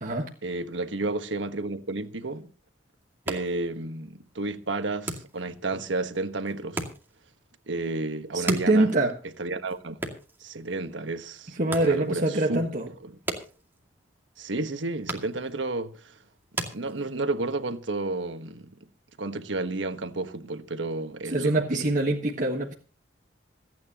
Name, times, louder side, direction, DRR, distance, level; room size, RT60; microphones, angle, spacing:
voice 1, 0.4-2.5 3.3-6.8 7.7-8.9 9.4-10.0 10.4-12.6 13.0-13.2 14.4-16.2 16.7-18.7 19.2-21.6, right 2 dB, 75° right, 1.3 m, -31 dB
sound 1, 3.0-17.5, right 2 dB, 10° right, 2.3 m, -40 dB
voice 2, 8.3-9.1 11.6-12.9 21.3-22.7, right 2 dB, 45° right, 1.4 m, -24 dB
27.0 x 9.4 x 2.9 m
head